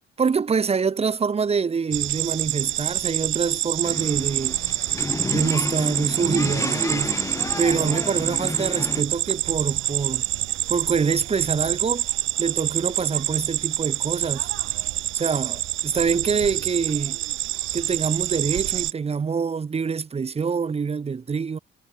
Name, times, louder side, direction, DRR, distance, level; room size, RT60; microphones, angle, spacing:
voice 1, 0.2-4.6 5.3-7.2 7.6-10.3 10.7-12.1 12.4-14.5 15.1-17.2 17.7-21.6, right 5 dB, 30° right, 0.9 m, -25 dB
sound 1, 1.9-18.9, right 15 dB, 75° right, 0.6 m, -27 dB
sound 2, 3.8-9.0, left 3 dB, 15° left, 0.9 m, -30 dB
cardioid pair, 90°, 20 cm